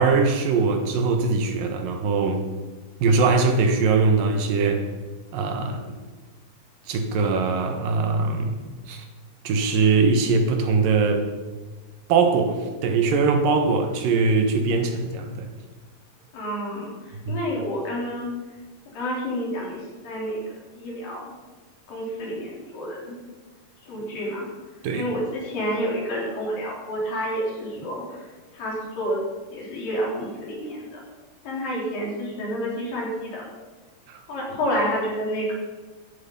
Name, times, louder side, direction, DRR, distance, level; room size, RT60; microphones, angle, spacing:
voice 1, 0.0-2.4 3.0-4.9 5.3-5.9 6.9-9.0 9.4-11.3 12.1-15.5 17.3-17.4 24.8-25.1 34.1-34.2, right 4 dB, 80° right, 5 dB, 3.1 m, -21 dB
voice 2, 16.3-18.3 18.9-21.3 21.9-23.2 23.8-24.5 24.7-29.2 29.5-31.0 31.4-33.4 34.3-35.5, equal, 80° left, -4 dB, 5.5 m, -29 dB
14.5 x 10.5 x 5.5 m, 1.3 s
omnidirectional pair, 3.9 m